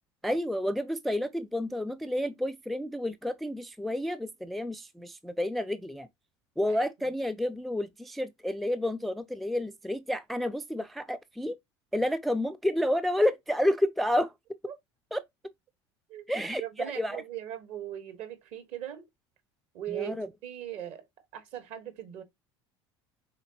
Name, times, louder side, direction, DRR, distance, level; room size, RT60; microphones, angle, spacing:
voice 1, 0.2-6.1 6.6-11.6 11.9-14.3 15.1-15.2 16.3-16.6 17.0-17.2 19.9-20.3, left 1 dB, ahead, 0.3 m, -30 dB
voice 2, 16.6-19.0 19.7-20.2 20.4-21.0 21.3-22.2, right 11 dB, 50° right, 1.2 m, -39 dB
5.0 x 3.9 x 2.7 m
figure-of-eight pair, 70°, 15 cm